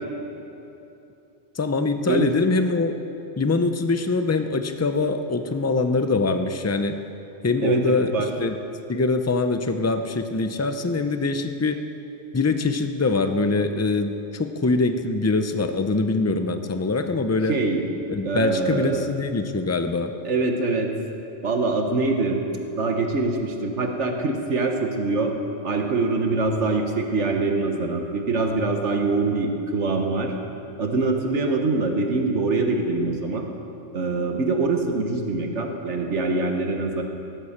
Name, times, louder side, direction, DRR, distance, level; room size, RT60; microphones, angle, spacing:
voice 1, 1.5-3.0 3.4-7.0 7.4-8.1 8.4-8.5 8.9-11.8 12.3-17.5 18.1-20.1, left 3 dB, 20° left, 7 dB, 0.5 m, -23 dB
voice 2, 17.5-17.8 18.2-19.1 20.2-20.9 21.4-22.4 22.8-25.3 25.6-30.3 30.8-33.5 33.9-37.0, right 3 dB, 65° right, 3 dB, 1.5 m, -24 dB
18.0 x 9.6 x 7.3 m, 3.0 s
omnidirectional pair, 1.3 m